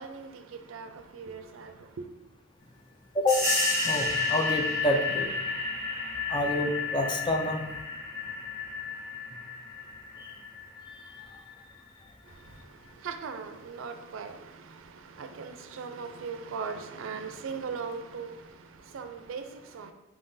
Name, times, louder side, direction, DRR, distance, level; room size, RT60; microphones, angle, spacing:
voice 1, 0.0-2.1 12.2-19.9, right 5 dB, 75° right, 0.4 m, -40 dB
sound 1, 3.3-11.6, left 3 dB, 40° left, 1.2 m, -31 dB
voice 2, 3.8-5.3 6.3-7.7 10.2-10.3, left 1 dB, 25° left, 0.4 m, -28 dB
4.5 x 3.7 x 2.6 m
head